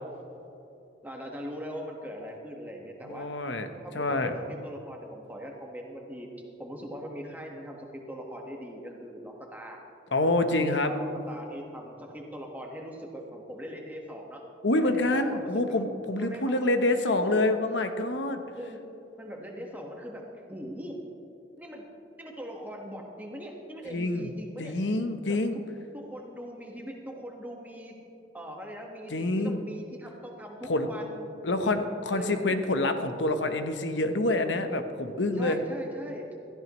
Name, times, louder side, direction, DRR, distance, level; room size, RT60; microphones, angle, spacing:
voice 1, 1.0-3.3 3.8-6.3 6.6-9.8 10.5-14.4 14.8-15.8 16.2-16.6 16.8-17.6 18.4-18.8 19.2-21.0 21.6-21.8 22.2-24.7 25.3-25.4 25.9-27.9 28.3-31.7 32.1-32.5 35.4-36.3, equal, 10° right, 0 dB, 1.5 m, -41 dB
voice 2, 3.0-3.7 3.9-4.3 10.1-10.9 14.6-18.4 23.9-24.3 24.6-25.6 29.1-29.6 30.7-30.9 31.4-35.6, left 2 dB, 80° left, 7 dB, 1.0 m, -27 dB
16.5 x 14.0 x 3.1 m, 2.9 s
head